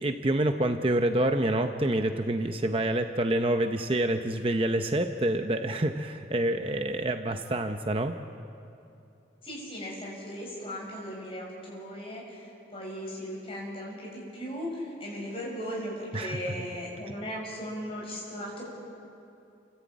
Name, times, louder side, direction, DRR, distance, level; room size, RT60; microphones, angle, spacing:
voice 1, 0.0-8.2 16.1-16.4, right 1 dB, 30° right, 6 dB, 0.7 m, -27 dB
voice 2, 9.4-18.6, equal, 30° left, -3 dB, 7.0 m, -37 dB
30.0 x 14.0 x 8.6 m, 2.8 s
head